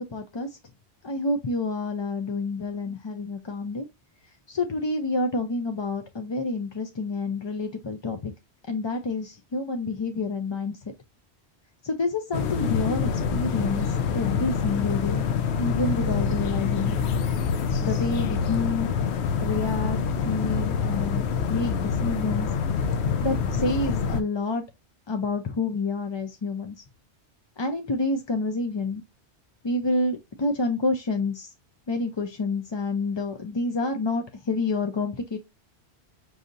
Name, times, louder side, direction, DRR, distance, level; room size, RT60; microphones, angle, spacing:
voice 1, 0.1-0.5 1.0-3.9 4.5-8.3 8.7-10.8 11.8-13.9 14.1-15.2 15.6-17.0 17.8-18.9 19.4-21.2 21.5-22.5 23.2-24.6 25.1-26.8 27.6-29.0 29.6-31.5 31.9-35.4, left 3 dB, 40° left, 0.4 m, -28 dB
sound 1, 12.3-24.2, left 6 dB, 85° left, 0.9 m, -26 dB
6.2 x 2.7 x 2.5 m
omnidirectional pair, 1.1 m